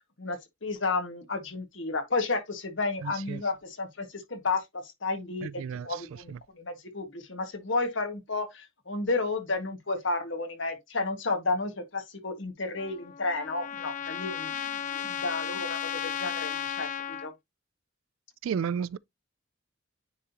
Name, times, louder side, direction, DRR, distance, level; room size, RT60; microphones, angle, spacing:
voice 1, 0.2-17.3, left 3 dB, 65° left, 1.7 m, -32 dB
voice 2, 3.0-3.4 5.4-5.9 18.4-19.0, right 7 dB, 80° right, 0.3 m, -32 dB
Trumpet, 12.8-17.3, left 9 dB, 40° left, 0.4 m, -34 dB
9.8 x 3.7 x 2.8 m
head